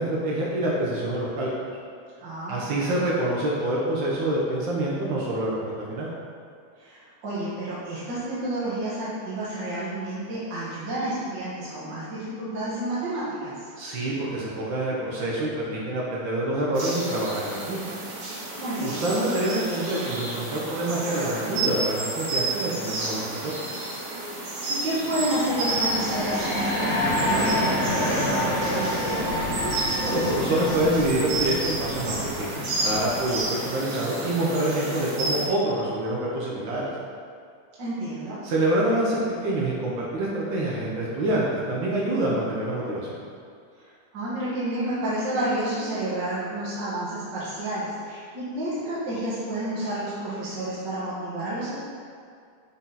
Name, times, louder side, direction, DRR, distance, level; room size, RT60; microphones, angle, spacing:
voice 1, 0.0-1.5 2.5-5.6 5.9-6.1 13.8-18.0 18.8-23.5 30.0-36.9 38.4-43.2, right 1 dB, 85° right, -5 dB, 1.0 m, -26 dB
voice 2, 2.2-2.9 6.8-13.5 18.6-19.1 24.3-29.7 37.8-38.4 43.8-51.7, right 1 dB, 45° right, -10 dB, 1.6 m, -30 dB
sound 1, 16.7-35.4, right 2 dB, 65° right, 2.2 m, -31 dB
sound 2, 24.9-33.6, left 1 dB, 55° left, 2.4 m, -28 dB
6.1 x 5.9 x 4.0 m, 2.3 s
omnidirectional pair, 3.5 m